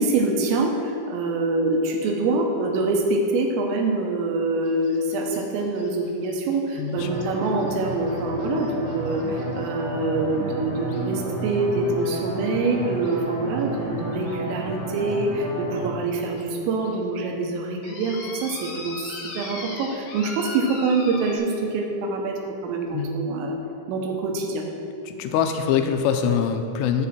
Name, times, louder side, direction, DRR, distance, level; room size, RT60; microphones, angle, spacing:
voice 1, 0.0-23.6 23.9-24.7, right 3 dB, 90° right, 2 dB, 3.8 m, -25 dB
sound 1, 4.7-9.7 10.9-11.0 12.0-12.2 13.0-13.2 13.6-13.7 14.2-14.4 15.1-15.2 15.8-15.9 16.4-16.5 16.8-17.0 17.8-21.4, left 2 dB, 65° left, 3.0 m, -39 dB
voice 2, 6.8-7.1 22.9-23.1 25.1-27.1, left 7 dB, 85° left, 6 dB, 3.2 m, -23 dB
sound 2, 6.9-15.9, right 1 dB, 55° right, 2.2 m, -32 dB
15.5 x 7.5 x 4.4 m, 2.8 s
omnidirectional pair, 5.7 m